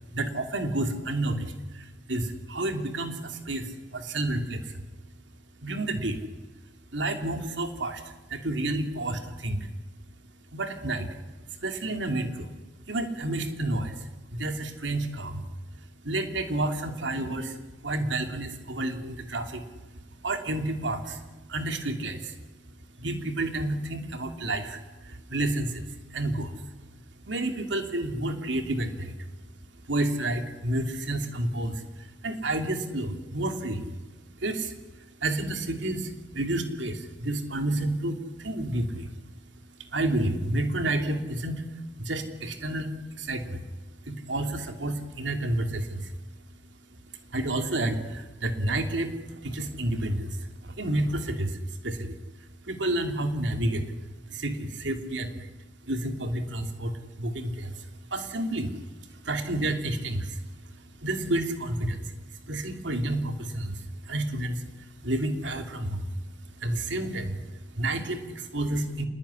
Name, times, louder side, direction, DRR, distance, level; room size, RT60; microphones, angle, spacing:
voice 1, 0.1-4.9 5.6-6.2 6.9-9.7 10.5-11.2 11.5-12.5 12.9-15.5 16.0-19.6 20.2-21.2 21.5-22.4 23.0-26.6 27.2-29.3 29.9-34.0 34.4-39.2 39.8-43.6 44.0-46.1 47.3-52.2 52.6-53.8 54.3-55.5 55.9-66.1 66.6-69.0, right 1 dB, 80° right, 6 dB, 2.9 m, -30 dB
27.0 x 20.0 x 10.0 m, 1.2 s
head